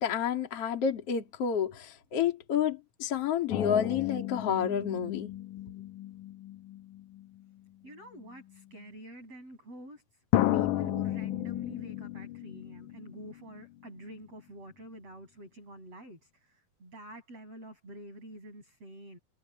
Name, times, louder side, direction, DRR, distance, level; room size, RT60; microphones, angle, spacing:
voice 1, 0.0-5.3, left 8 dB, 40° left, 3.4 m, -30 dB
sound 1, 3.5-7.4 8.3-8.4 10.3-13.6 13.9-14.0, left 14 dB, 75° left, 1.9 m, -33 dB
voice 2, 7.8-10.0 10.5-19.2, right 1 dB, 35° right, 8.9 m, -47 dB
omnidirectional pair, 4.8 m